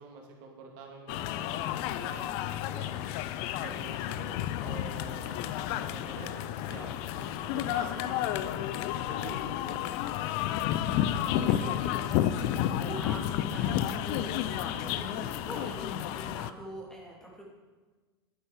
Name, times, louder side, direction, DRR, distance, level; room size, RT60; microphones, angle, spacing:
voice 1, 0.0-3.0 3.6-9.9 10.9-11.0, right 3 dB, 50° right, 1 dB, 2.8 m, -46 dB
sound 1, 1.1-16.5, left 11 dB, 50° left, 0.6 m, -31 dB
voice 2, 11.1-17.4, equal, 5° left, -3 dB, 2.7 m, -43 dB
11.0 x 9.7 x 5.0 m, 1.3 s
figure-of-eight pair, 90°, 13 cm